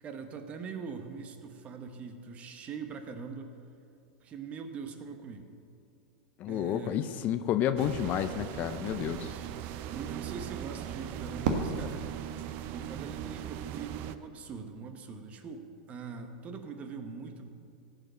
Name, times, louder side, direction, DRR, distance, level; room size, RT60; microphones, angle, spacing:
voice 1, 0.0-3.6 4.2-5.5 6.5-7.0 8.8-12.0 12.7-17.5, right 5 dB, 30° right, 7 dB, 1.1 m, -42 dB
voice 2, 6.4-9.2, left 10 dB, 40° left, 11 dB, 0.6 m, -30 dB
sound 1, 7.8-14.2, right 10 dB, 50° right, 0.6 m, -39 dB
Fireworks, 11.4-13.6, right 3 dB, 70° right, 1.3 m, -35 dB
16.0 x 5.4 x 6.5 m, 2.5 s
supercardioid pair, 120°, 4 cm